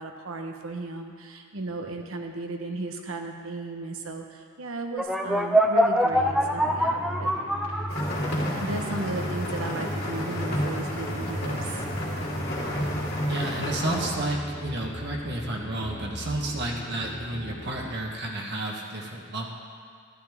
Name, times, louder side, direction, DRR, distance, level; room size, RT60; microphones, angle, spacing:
voice 1, 0.0-7.3 8.6-11.8, right 2 dB, 90° right, 4 dB, 1.0 m, -35 dB
sound 1, 5.0-8.5, equal, ahead, 0.5 m, -23 dB
sound 2, 6.1-17.9, equal, 70° left, 2.5 m, -37 dB
sound 3, 7.9-14.0, equal, 50° left, 2.7 m, -31 dB
voice 2, 13.3-19.5, right 1 dB, 55° right, 0 dB, 1.2 m, -31 dB
12.5 x 11.5 x 3.5 m, 2.1 s
head